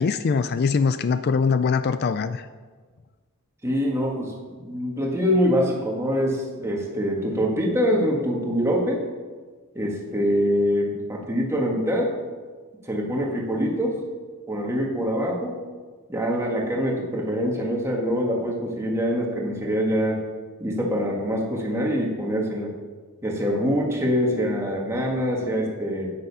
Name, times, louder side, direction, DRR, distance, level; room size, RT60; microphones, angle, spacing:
voice 1, 0.0-2.5, left 5 dB, 45° left, 12 dB, 0.3 m, -22 dB
voice 2, 3.6-9.0 9.8-12.1 12.9-14.0 14.5-15.6 16.1-20.2 20.6-22.7 23.2-26.1, equal, 15° right, -1 dB, 1.8 m, -24 dB
9.4 x 9.0 x 5.6 m, 1.5 s
head